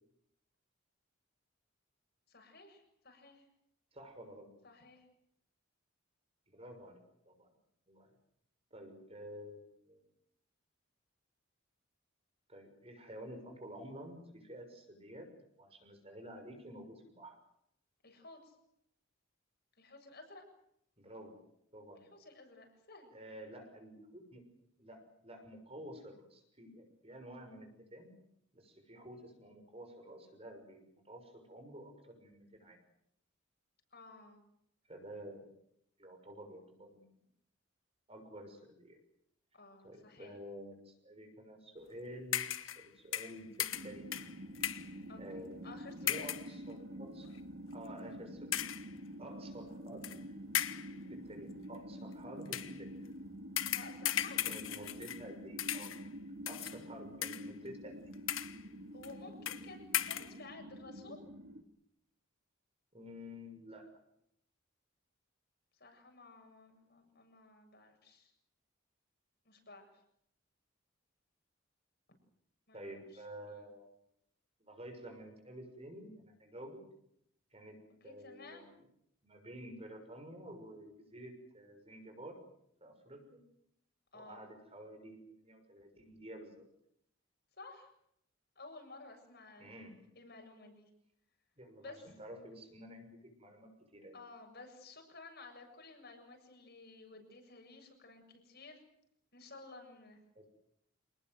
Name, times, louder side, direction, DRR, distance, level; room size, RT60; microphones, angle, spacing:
voice 1, 2.3-3.5 4.6-5.1 18.0-18.5 19.8-20.4 22.1-23.1 33.9-34.4 39.5-40.4 45.1-45.2 45.6-46.3 53.7-54.9 58.9-61.2 65.8-68.3 69.4-69.9 72.7-73.2 73.5-73.6 78.0-78.7 84.1-84.4 87.6-87.9 88.6-89.7 90.2-90.9 91.8-92.1 94.1-98.8 99.3-100.2, left 3 dB, 50° left, 4 dB, 7.5 m, -54 dB
voice 2, 3.9-4.5 6.5-7.5 7.9-8.1 8.7-10.1 12.5-15.3 15.6-17.4 21.0-21.4 21.7-22.1 23.1-24.4 24.8-28.1 28.5-32.8 34.9-35.5 36.0-37.1 38.1-39.0 39.8-44.1 45.2-45.7 46.0-47.3 47.7-48.6 49.2-50.0 51.1-52.9 54.4-56.0 56.4-58.2 62.9-63.9 72.7-73.9 74.6-76.8 77.5-78.7 79.2-82.4 82.8-83.4 84.1-86.6 89.6-89.9 91.6-94.2 100.3-100.4, equal, 30° right, 5 dB, 6.3 m, -50 dB
sound 1, 42.3-42.9 43.1-44.9 46.1-46.5 47.2-47.4 48.5-48.9 50.0-50.2 50.5-51.0 52.5-52.8 53.6-55.3 55.6-56.1 56.5-56.8 57.2-57.7 58.1-58.6 59.0-59.1 59.5-59.7 59.9-60.3, left 11 dB, 80° left, 1.5 m, -37 dB
sound 2, 43.7-61.6, equal, 65° right, 2.7 m, -48 dB
28.0 x 20.0 x 7.9 m, 0.75 s
head